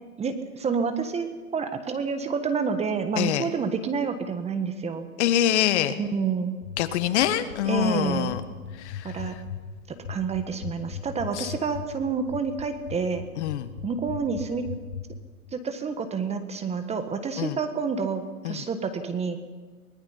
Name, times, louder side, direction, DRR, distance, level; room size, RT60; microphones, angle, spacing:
voice 1, 0.2-5.1 6.0-6.5 7.7-8.3 9.0-9.4 9.9-13.2 13.8-14.7 15.5-19.4, right 5 dB, 15° right, 8 dB, 1.4 m, -28 dB
voice 2, 3.2-3.5 5.2-6.0 6.8-8.4 8.8-9.1 11.4-11.5 13.4-13.7 17.4-17.6 18.4-18.6, left 12 dB, 50° left, 11 dB, 1.6 m, -25 dB
sound 1, 6.6-15.0, left 8 dB, 80° left, 4.6 m, -36 dB
23.5 x 20.0 x 5.7 m, 1.4 s
hypercardioid pair, 130°, 44 cm